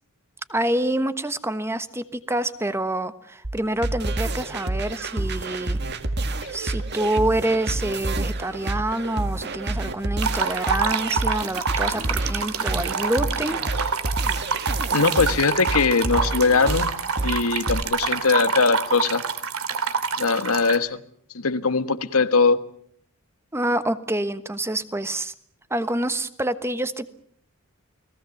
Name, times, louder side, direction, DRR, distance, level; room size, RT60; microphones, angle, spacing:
voice 1, 0.5-5.8 6.5-13.6 23.5-25.3 25.7-27.1, right 1 dB, 10° right, 12 dB, 1.2 m, -27 dB
sound 1, 3.4-17.8, right 2 dB, 50° right, 1.9 m, -28 dB
sound 2, 10.2-20.8, right 5 dB, 85° right, 2.6 m, -27 dB
voice 2, 14.9-16.9 17.2-19.2 20.2-21.0 21.3-22.6, left 4 dB, 90° left, 11 dB, 1.5 m, -21 dB
29.5 x 19.5 x 7.2 m, 0.63 s
head